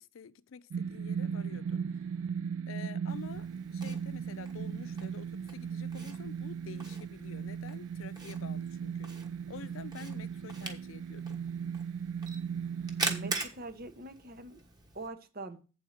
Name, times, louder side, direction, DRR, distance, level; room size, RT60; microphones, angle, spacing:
voice 1, 0.0-2.1 2.7-9.1 9.5-11.4, left 6 dB, 85° left, 0.5 m, -48 dB
sound 1, 0.7-13.3, right 7 dB, 85° right, 0.3 m, -37 dB
Camera, 3.1-15.1, right 2 dB, 20° right, 1.2 m, -43 dB
voice 2, 13.0-14.6 14.9-15.6, right 2 dB, 50° right, 1.0 m, -43 dB
7.9 x 4.6 x 6.4 m
head